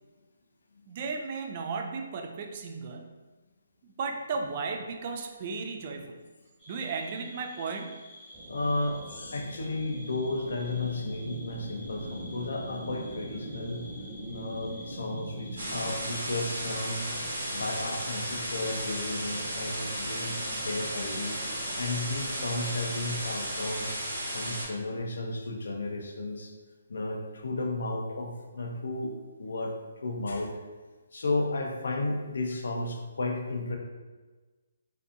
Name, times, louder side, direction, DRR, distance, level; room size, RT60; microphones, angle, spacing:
voice 1, 0.9-3.2 4.0-6.2 6.7-8.0, right 4 dB, 40° right, 4 dB, 0.3 m, -35 dB
sound 1, 6.6-24.5, left 1 dB, 10° left, 1.1 m, -50 dB
sound 2, 8.3-23.3, right 1 dB, 20° right, 1.1 m, -44 dB
voice 2, 8.5-13.8 14.3-17.1 17.5-21.4 21.8-23.9 24.3-26.5 26.9-29.7 30.0-30.5 31.1-33.8, left 2 dB, 75° left, 2 dB, 0.5 m, -33 dB
sound 3, 15.6-24.6, right 1 dB, 70° right, 1.1 m, -34 dB
2.5 x 2.4 x 2.5 m, 1.3 s
hypercardioid pair, 155°, 0 cm